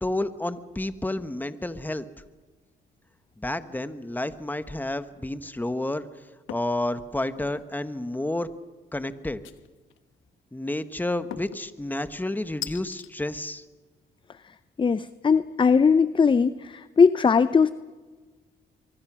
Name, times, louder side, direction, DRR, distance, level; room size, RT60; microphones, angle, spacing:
voice 1, 0.0-2.0 3.4-6.1 6.5-8.5 8.9-9.4 10.5-13.6, left 1 dB, 10° left, 11 dB, 1.3 m, -30 dB
sound 1, 6.5-6.8 7.2-7.7 9.4-10.0 11.3-11.7 12.6-13.1, left 12 dB, 90° left, 1.1 m, -39 dB
voice 2, 14.8-17.7, left 5 dB, 25° left, 14 dB, 0.6 m, -20 dB
24.0 x 23.5 x 6.2 m, 1.4 s
cardioid pair, 90°, 20 cm